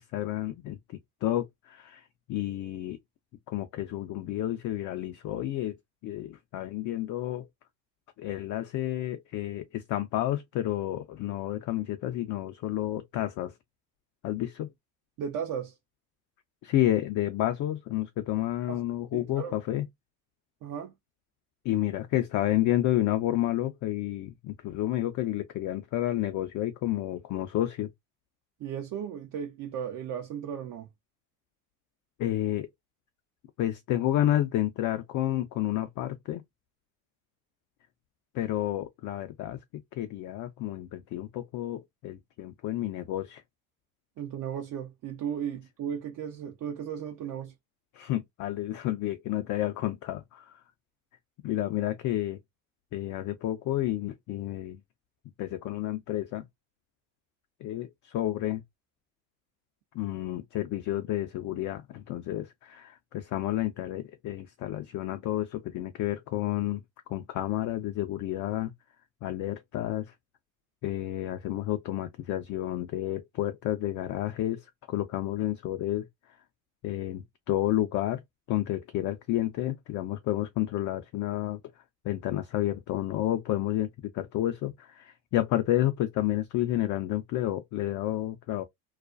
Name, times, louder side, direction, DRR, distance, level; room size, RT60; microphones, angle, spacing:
voice 1, 0.0-3.0 3.5-5.8 6.0-7.5 8.2-13.5 14.2-14.7 16.6-19.9 21.6-27.9 32.2-32.7 33.6-36.4 38.3-39.6 40.0-43.4 47.9-50.6 51.4-52.4 52.9-54.8 55.4-56.4 57.6-58.6 59.9-66.8 67.1-68.7 69.2-70.1 70.8-76.1 76.8-78.2 78.5-81.6 82.0-83.9 84.1-88.6, left 14 dB, 45° left, 0.5 m, -30 dB
voice 2, 15.2-15.8 18.7-18.8 19.1-19.5 20.6-20.9 28.6-30.9 44.2-47.5, right 8 dB, 50° right, 0.7 m, -35 dB
2.4 x 2.1 x 2.5 m
hypercardioid pair, 65°, 43 cm